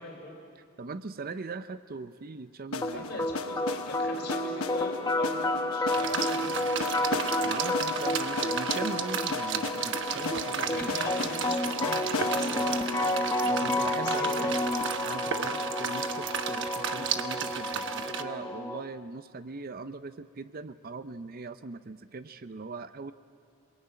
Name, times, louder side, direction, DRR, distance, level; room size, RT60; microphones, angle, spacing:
voice 1, 0.0-0.4 2.8-7.3 10.4-14.9, left 2 dB, 50° left, 2 dB, 3.9 m, -41 dB
voice 2, 0.6-3.3 7.4-10.9 13.4-14.5 15.0-23.1, right 4 dB, 45° right, 12 dB, 0.6 m, -40 dB
sound 1, 2.7-14.6, left 3 dB, 80° left, 1.1 m, -38 dB
sound 2, 2.8-18.8, left 1 dB, 20° left, 1.1 m, -31 dB
sound 3, 5.9-18.2, right 7 dB, 60° right, 1.1 m, -34 dB
28.0 x 21.0 x 8.9 m, 2.4 s
head